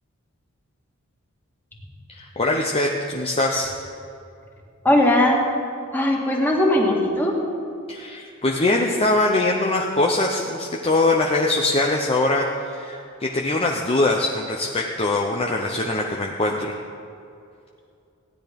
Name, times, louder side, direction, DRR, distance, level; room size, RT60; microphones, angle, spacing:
voice 1, 2.1-3.7 7.9-16.7, left 2 dB, 25° left, 0 dB, 0.8 m, -22 dB
voice 2, 4.8-5.4 5.9-7.4, left 1 dB, 10° left, -2 dB, 1.9 m, -19 dB
16.0 x 9.9 x 5.3 m, 2.5 s
head